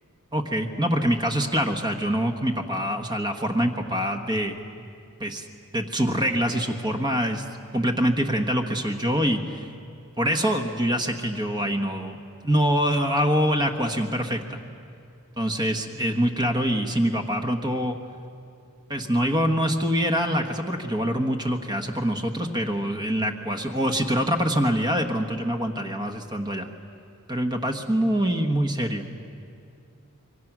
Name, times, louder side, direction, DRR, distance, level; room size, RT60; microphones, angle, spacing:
voice 1, 0.3-4.9 5.2-5.5 5.7-7.4 7.7-9.6 10.2-12.2 12.4-14.6 15.4-18.0 18.9-26.7 27.3-29.1, equal, 20° right, 3 dB, 1.3 m, -25 dB
26.5 x 23.5 x 6.1 m, 2.4 s
head